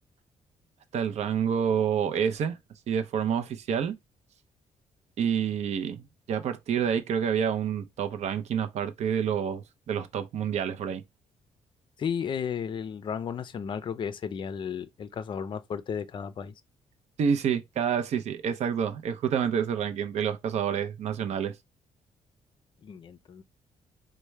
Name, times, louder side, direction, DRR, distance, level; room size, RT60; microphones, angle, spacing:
voice 1, 0.9-2.6 2.9-3.9 5.2-11.0 17.2-21.5, right 8 dB, 60° right, 0.5 m, -28 dB
voice 2, 12.0-16.5 22.8-23.4, left 7 dB, 40° left, 0.4 m, -34 dB
4.5 x 2.1 x 3.2 m
cardioid pair, 145°, 13 cm